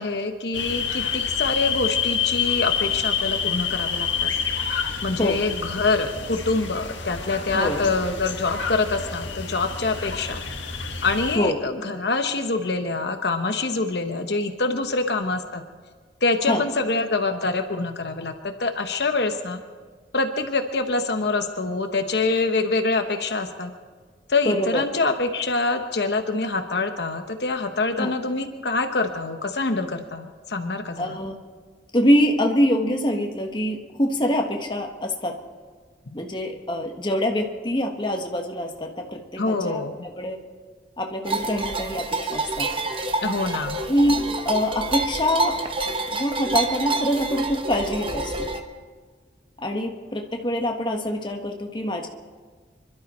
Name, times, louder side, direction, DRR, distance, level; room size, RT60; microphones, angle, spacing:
voice 1, 0.0-4.3 5.0-10.4 11.0-15.6 16.2-18.3 18.6-19.6 20.1-23.7 24.3-31.2 39.4-40.0 43.2-43.8, left 3 dB, 65° left, 6 dB, 1.0 m, -25 dB
sound 1, 0.5-11.4, left 7 dB, 85° left, 1.7 m, -28 dB
voice 2, 7.5-7.9 11.3-11.6 16.5-16.6 24.4-24.8 28.0-28.1 31.0-31.4 31.9-35.3 36.1-39.8 40.2-40.3 41.0-42.7 43.9-44.2 44.4-45.6 46.1-48.5 49.6-52.1, equal, 25° left, 2 dB, 1.3 m, -24 dB
sound 2, 41.2-48.6, right 3 dB, 30° right, 1.0 m, -27 dB
25.5 x 12.0 x 4.3 m, 1.5 s
head